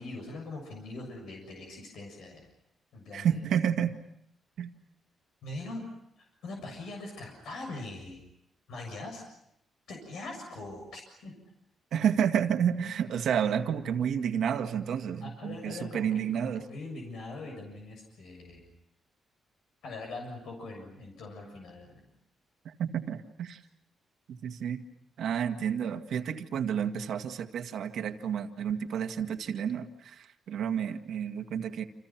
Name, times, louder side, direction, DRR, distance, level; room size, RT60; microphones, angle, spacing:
voice 1, 0.0-2.5 2.9-3.4 5.4-5.8 6.2-8.2 8.7-9.2 9.9-11.3 15.2-18.7 19.8-22.1, left 2 dB, 75° left, 2 dB, 7.1 m, -42 dB
voice 2, 3.1-3.9 4.6-4.7 11.9-16.6 22.7-23.6 24.3-24.8 25.2-31.8, right 8 dB, 65° right, 6 dB, 1.8 m, -30 dB
29.5 x 28.0 x 5.9 m, 0.76 s
wide cardioid pair, 170°, 0 cm